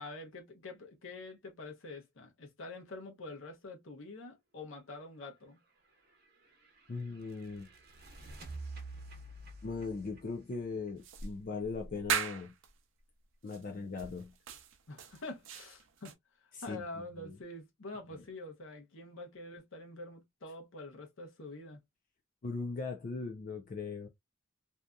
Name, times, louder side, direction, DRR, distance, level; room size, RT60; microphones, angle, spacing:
voice 1, 0.0-5.6 14.9-16.1 16.4-21.8, left 2 dB, 80° left, 0.8 m, -46 dB
sound 1, 5.8-11.6, right 2 dB, 50° right, 0.8 m, -49 dB
voice 2, 6.9-7.7 9.6-12.5 13.4-14.3 16.5-16.8 17.2-17.3 18.1-18.2 22.4-24.1, left 4 dB, 45° left, 0.4 m, -39 dB
sound 2, 11.0-12.7 13.5-13.6 14.0-16.1, right 7 dB, 75° right, 0.5 m, -38 dB
2.7 x 2.4 x 2.2 m
head